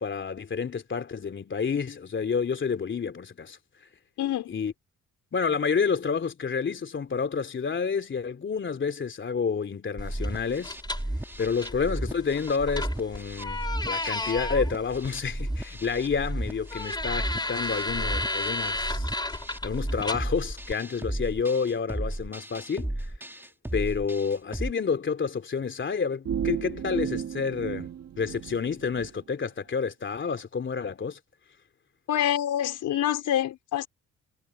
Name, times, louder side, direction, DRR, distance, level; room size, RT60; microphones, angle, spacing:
voice 1, 0.0-3.6 4.5-4.7 5.3-10.8 11.4-19.2 19.6-22.9 23.7-27.9 28.2-31.2, left 5 dB, 40° left, 3.1 m, -29 dB
voice 2, 4.2-4.6 32.1-33.9, left 11 dB, 80° left, 5.2 m, -26 dB
sound 1, 10.0-20.7, left 2 dB, 15° left, 3.0 m, -34 dB
sound 2, 10.0-24.7, right 1 dB, 5° right, 2.6 m, -34 dB
sound 3, 26.2-29.1, right 8 dB, 55° right, 2.0 m, -33 dB
cardioid pair, 90°, 30 cm